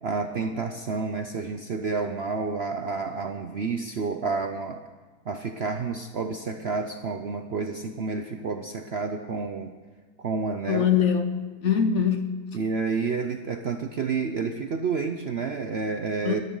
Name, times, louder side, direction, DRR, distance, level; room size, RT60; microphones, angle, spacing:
voice 1, 0.0-4.9 5.3-9.7 10.2-10.8 12.5-16.4, right 4 dB, 55° right, 6 dB, 0.7 m, -29 dB
voice 2, 10.7-12.3 16.2-16.4, left 7 dB, 50° left, 8 dB, 1.0 m, -23 dB
22.0 x 13.5 x 3.9 m, 1.4 s
omnidirectional pair, 1.8 m